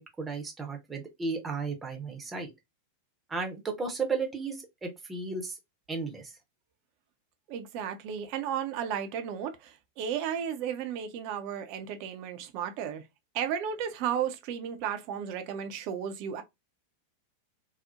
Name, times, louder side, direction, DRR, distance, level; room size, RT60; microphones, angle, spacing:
voice 1, 0.0-2.5 3.3-5.6 5.9-6.3, right 4 dB, 15° right, 0.8 m, -34 dB
voice 2, 7.5-13.0 13.3-16.4, right 8 dB, 45° right, 0.5 m, -34 dB
2.8 x 2.0 x 2.4 m
figure-of-eight pair, 90°, 0 cm